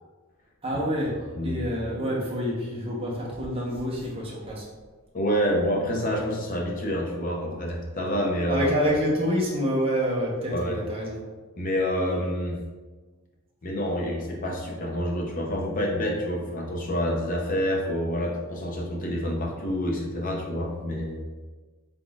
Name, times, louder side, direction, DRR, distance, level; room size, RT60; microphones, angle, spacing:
voice 1, 0.6-1.2 1.4-4.7 8.5-11.2, equal, 25° right, -4 dB, 0.8 m, -27 dB
voice 2, 5.1-8.6 10.5-10.8 11.6-12.6 13.6-21.2, equal, 35° left, -1 dB, 0.6 m, -27 dB
3.8 x 3.7 x 2.3 m, 1.3 s
head